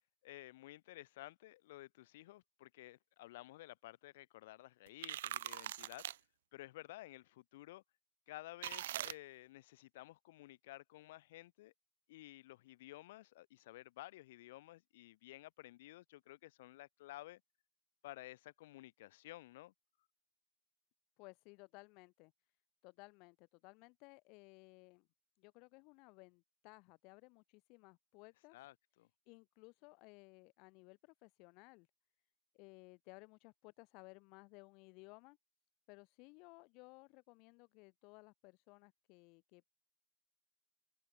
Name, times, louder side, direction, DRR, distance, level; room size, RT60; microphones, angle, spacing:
voice 1, 0.2-6.0 6.5-7.8 8.3-11.7 12.1-17.4 18.0-19.7 28.5-29.1, left 17 dB, 75° left, 4.5 m, -54 dB
sound 1, 4.9-6.2 8.6-9.1, right 13 dB, 90° right, 0.7 m, -42 dB
voice 2, 21.2-22.3 22.8-25.1 25.4-28.6 29.3-31.9 32.5-35.4 35.9-39.8, left 29 dB, 50° left, 2.3 m, -59 dB
supercardioid pair, 145°, 0 cm